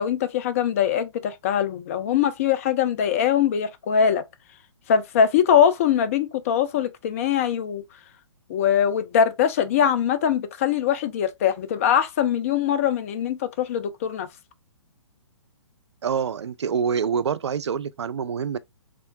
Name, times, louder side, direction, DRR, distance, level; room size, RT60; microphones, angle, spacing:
voice 1, 0.0-4.2 4.9-7.8 8.5-14.3, left 8 dB, 30° left, 0.4 m, -22 dB
voice 2, 16.0-18.6, right 7 dB, 60° right, 0.4 m, -26 dB
3.0 x 2.9 x 2.5 m
figure-of-eight pair, 125°, 16 cm